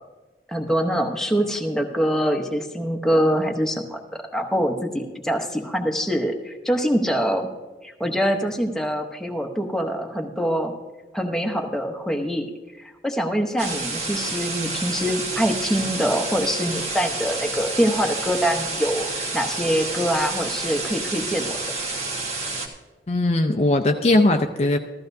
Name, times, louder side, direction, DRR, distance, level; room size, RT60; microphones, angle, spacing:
voice 1, 0.5-7.5 7.8-10.7 11.1-12.5 12.8-21.6, equal, 5° left, 2 dB, 0.8 m, -24 dB
sound 1, 13.6-22.7, right 3 dB, 40° right, 1.4 m, -29 dB
voice 2, 23.1-24.8, left 2 dB, 35° left, 5 dB, 0.5 m, -19 dB
14.5 x 14.0 x 2.7 m, 1.2 s
head